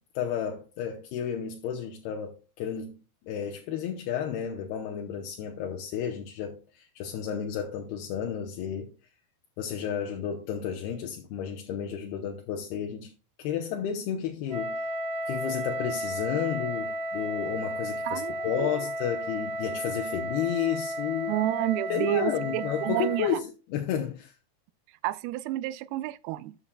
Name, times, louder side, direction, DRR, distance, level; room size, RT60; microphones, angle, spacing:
voice 1, 0.2-8.9 9.6-13.1 13.4-14.9 15.3-21.4 21.9-24.3, left 8 dB, 80° left, 2.8 m, -32 dB
Wind instrument woodwind instrument, 14.5-23.4, equal, 55° right, 1.5 m, -33 dB
voice 2, 18.1-18.7 21.3-23.3 25.0-26.6, right 16 dB, 80° right, 2.3 m, -30 dB
13.0 x 8.1 x 2.3 m
omnidirectional pair, 4.7 m